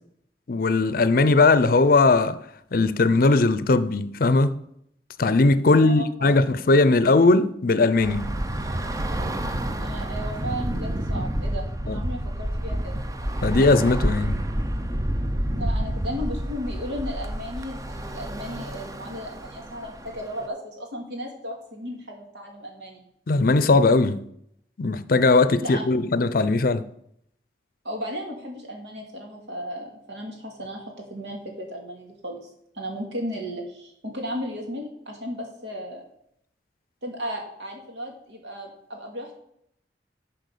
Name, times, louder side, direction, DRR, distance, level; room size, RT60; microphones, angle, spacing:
voice 1, 0.5-2.4 2.7-4.6 5.2-8.3 11.9-12.0 13.4-14.4 23.3-24.2 24.8-26.8, left 3 dB, 55° left, 0.5 m, -19 dB
voice 2, 5.7-6.4 9.8-13.0 15.5-23.0 25.6-25.8 27.8-32.5 32.7-36.0 37.0-39.3, equal, 90° right, 2.3 m, -35 dB
Bus / Traffic noise roadway noise, 8.0-20.5, right 1 dB, 20° right, 0.5 m, -29 dB
10.5 x 4.5 x 6.6 m
head